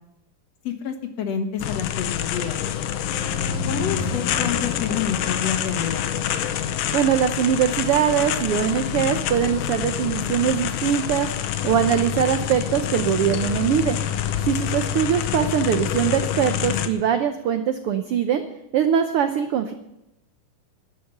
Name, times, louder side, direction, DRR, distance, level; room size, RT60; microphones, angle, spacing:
voice 1, 0.6-2.8 3.7-6.1, left 7 dB, 60° left, 7 dB, 2.1 m, -28 dB
sound 1, 1.6-16.9, left 10 dB, 80° left, 2.4 m, -27 dB
sound 2, 2.8-7.4, left 3 dB, 35° left, 5.0 m, -34 dB
voice 2, 6.9-11.3 11.6-14.0 14.4-18.4 18.7-19.7, right 9 dB, 85° right, 8 dB, 1.2 m, -22 dB
12.5 x 11.0 x 6.7 m, 0.88 s
omnidirectional pair, 3.6 m